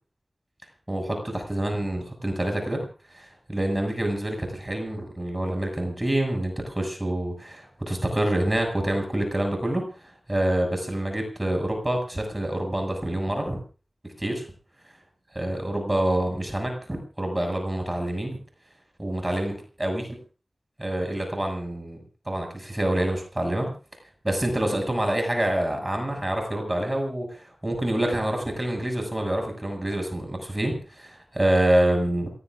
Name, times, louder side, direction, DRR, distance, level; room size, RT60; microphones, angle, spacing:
voice 1, 0.9-2.8 3.1-13.6 14.2-14.5 15.3-18.4 19.0-20.2 20.8-23.7 24.2-32.3, right 1 dB, 25° right, 3 dB, 7.0 m, -27 dB
27.5 x 19.0 x 2.6 m, 0.37 s
wide cardioid pair, 55°, 0 cm